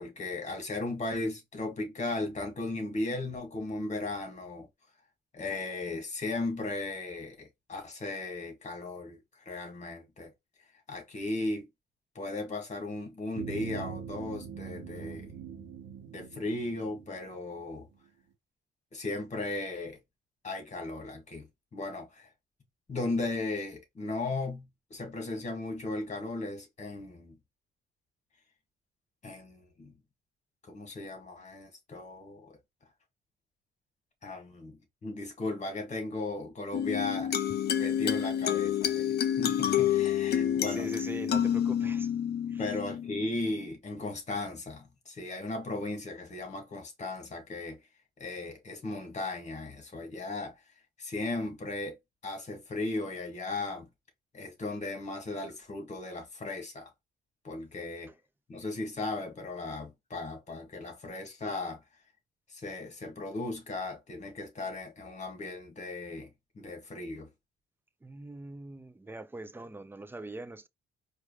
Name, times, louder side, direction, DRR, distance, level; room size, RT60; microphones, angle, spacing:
voice 1, 0.0-4.7 5.3-10.3 10.9-11.7 12.2-15.3 16.1-17.9 18.9-20.0 20.4-21.5 21.7-22.3 22.9-27.4 29.2-29.9 30.6-32.6 34.2-37.3 37.7-40.9 42.6-47.8 48.2-50.6 51.0-52.0 52.2-53.9 54.3-56.9 57.4-58.1 58.5-61.8 62.5-66.3 66.6-67.3, left 2 dB, 35° left, 2.0 m, -36 dB
sound 1, 13.3-17.8, right 7 dB, 70° right, 0.9 m, -42 dB
sound 2, 36.7-43.7, left 9 dB, 55° left, 0.7 m, -29 dB
voice 2, 40.7-42.1 42.4-42.6 68.0-70.7, right 2 dB, 10° right, 0.5 m, -42 dB
4.6 x 2.7 x 3.2 m
cardioid pair, 90°, 20 cm